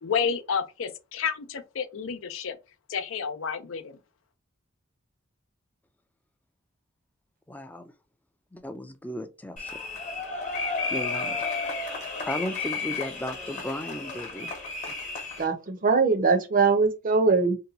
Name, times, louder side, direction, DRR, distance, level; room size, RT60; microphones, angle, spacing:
voice 1, 0.0-2.6 2.9-4.0, left 6 dB, 75° left, 0.5 m, -30 dB
voice 2, 7.5-7.9 8.5-9.8 10.9-11.4 12.2-14.5, left 1 dB, 10° left, 0.4 m, -35 dB
sound 1, 9.6-15.4, left 4 dB, 35° left, 1.0 m, -32 dB
voice 3, 15.4-17.6, right 4 dB, 45° right, 0.6 m, -22 dB
2.8 x 2.2 x 3.9 m
head